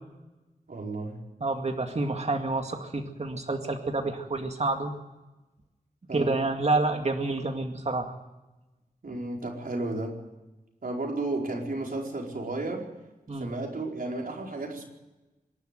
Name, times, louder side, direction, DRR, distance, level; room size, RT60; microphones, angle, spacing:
voice 1, 0.7-1.2 6.1-6.4 9.0-10.2 10.8-12.9 13.4-14.8, right 2 dB, 70° right, 0 dB, 4.7 m, -33 dB
voice 2, 1.4-4.9 6.1-8.1 13.3-13.5, right 2 dB, 45° right, 4 dB, 2.1 m, -28 dB
25.5 x 12.0 x 9.1 m, 1.1 s
wide cardioid pair, 100°, 15 cm